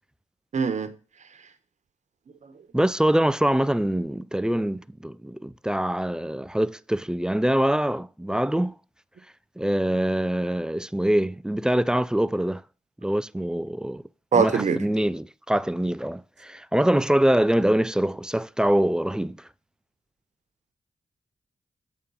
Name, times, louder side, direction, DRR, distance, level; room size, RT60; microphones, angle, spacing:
voice 1, 0.5-0.9 14.3-14.8, right 5 dB, 55° right, 1.1 m, -22 dB
voice 2, 2.7-8.7 9.6-12.6 13.0-14.0 14.3-19.4, right 1 dB, 5° right, 0.3 m, -24 dB
8.0 x 3.6 x 5.5 m
cardioid pair, 65°, 14 cm